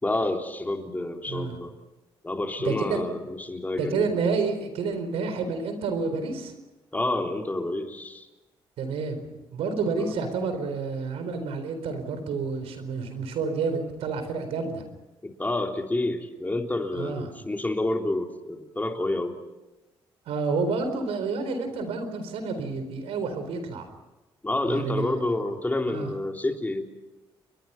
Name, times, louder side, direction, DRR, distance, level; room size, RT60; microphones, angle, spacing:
voice 1, 0.0-1.7 2.2-4.1 6.9-8.3 10.0-10.1 15.2-19.4 24.4-26.8, left 2 dB, 15° left, 3 dB, 3.5 m, -29 dB
voice 2, 2.6-3.0 3.8-6.5 8.8-9.2 9.5-14.8 17.0-17.3 20.3-23.9 24.7-25.1 25.9-26.1, right 4 dB, 80° right, 9 dB, 4.4 m, -29 dB
30.0 x 22.0 x 5.8 m, 1.1 s
cardioid pair, 80°, 10 cm